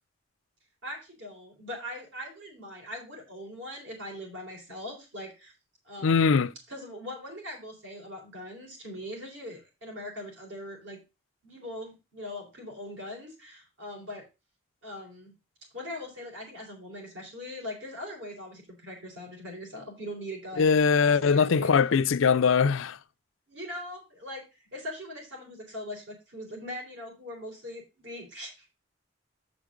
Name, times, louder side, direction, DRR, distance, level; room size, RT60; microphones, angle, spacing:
voice 1, 0.8-5.5 5.8-11.0 11.4-14.2 14.8-15.3 15.7-20.8 21.0-21.7 23.5-28.7, left 1 dB, 70° right, 4.2 m, -41 dB
voice 2, 6.0-6.5 20.6-23.0, left 5 dB, 85° left, 0.5 m, -22 dB
7.4 x 6.1 x 5.0 m
head